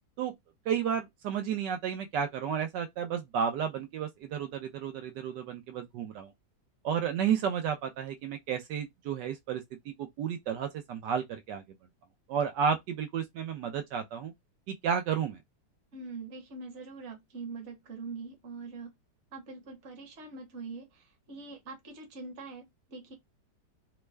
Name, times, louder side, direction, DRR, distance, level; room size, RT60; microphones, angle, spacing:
voice 1, 0.7-6.3 6.8-9.6 10.0-11.6 12.3-14.3 14.7-15.4, right 8 dB, 80° right, 1.3 m, -32 dB
voice 2, 15.9-18.9 19.3-23.1, right 4 dB, 45° right, 1.2 m, -43 dB
3.4 x 2.1 x 3.2 m
omnidirectional pair, 1.9 m